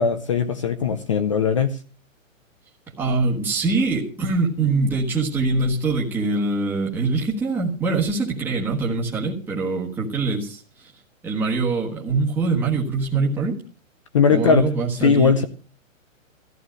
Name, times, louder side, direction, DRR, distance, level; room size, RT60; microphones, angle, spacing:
voice 1, 0.0-1.8 14.1-14.7 15.0-15.5, left 6 dB, 25° left, 10 dB, 0.6 m, -19 dB
voice 2, 3.0-10.9 11.2-13.6 14.3-15.3, right 3 dB, 5° right, -4 dB, 1.4 m, -23 dB
14.0 x 11.5 x 6.4 m, 0.37 s
hypercardioid pair, 165°, 40 cm